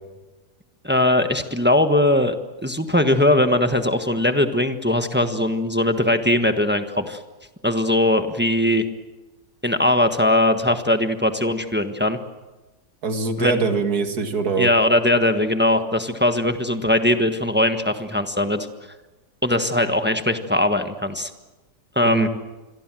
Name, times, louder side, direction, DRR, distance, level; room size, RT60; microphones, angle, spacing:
voice 1, 0.8-2.4 2.6-7.2 7.6-8.8 9.6-12.2 13.4-13.6 14.6-18.7 19.4-21.3 21.9-22.3, left 1 dB, 5° right, 7 dB, 1.2 m, -20 dB
voice 2, 13.0-14.7 22.0-22.3, right 4 dB, 65° right, 7 dB, 2.5 m, -23 dB
27.5 x 23.0 x 7.7 m, 1.1 s
omnidirectional pair, 1.8 m